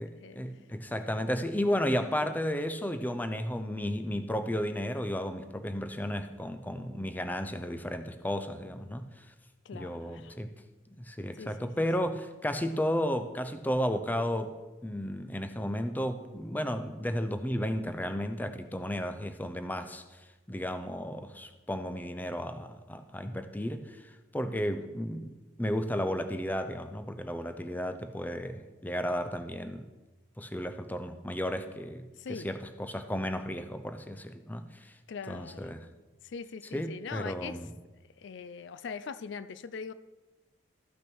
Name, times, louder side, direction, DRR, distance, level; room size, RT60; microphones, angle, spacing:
voice 1, 0.4-9.3 9.7-10.5 11.0-14.5 14.8-25.3 25.6-29.8 30.4-34.9 35.3-35.9 36.7-37.7, equal, 10° left, 9 dB, 0.5 m, -33 dB
voice 2, 9.7-10.4 11.4-11.7 24.6-24.9 32.2-32.5 35.1-35.7 36.2-37.6 38.2-39.9, left 5 dB, 60° left, 14 dB, 0.4 m, -42 dB
13.5 x 6.1 x 6.2 m, 1.2 s
head